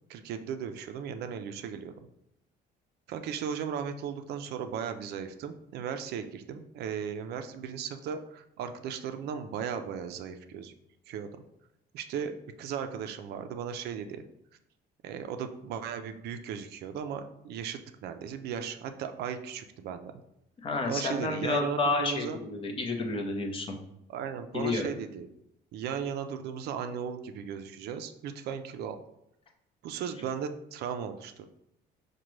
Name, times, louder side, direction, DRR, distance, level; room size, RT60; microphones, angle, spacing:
voice 1, 0.1-1.9 3.1-10.7 11.1-11.3 11.9-12.3 12.6-14.2 15.0-20.1 20.9-22.4 24.1-25.3 25.7-29.0 29.8-31.4, right 7 dB, 65° right, 8 dB, 0.4 m, -36 dB
voice 2, 20.6-23.8 24.5-24.9, left 3 dB, 30° left, 2 dB, 0.5 m, -30 dB
5.0 x 2.2 x 3.0 m, 0.81 s
cardioid pair, 150°, 18 cm